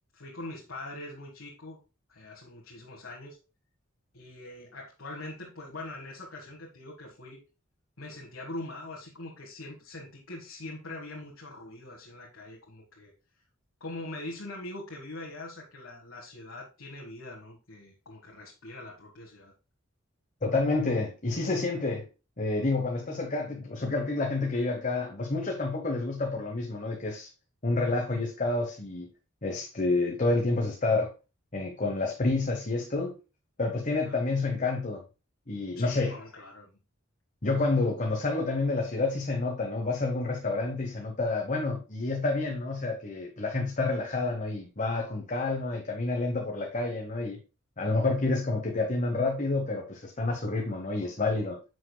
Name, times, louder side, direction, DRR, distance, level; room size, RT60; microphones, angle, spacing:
voice 1, 0.1-1.8 2.1-3.4 4.1-7.4 8.0-13.1 13.8-19.5 34.1-34.2 35.7-36.7, left 2 dB, 85° left, 1.6 m, -42 dB
voice 2, 20.4-22.1 22.4-27.3 27.6-29.1 29.4-31.1 31.5-33.2 33.6-35.0 35.5-36.2 37.4-47.4 47.8-51.6, left 3 dB, 35° left, 1.0 m, -29 dB
9.7 x 6.3 x 2.2 m
head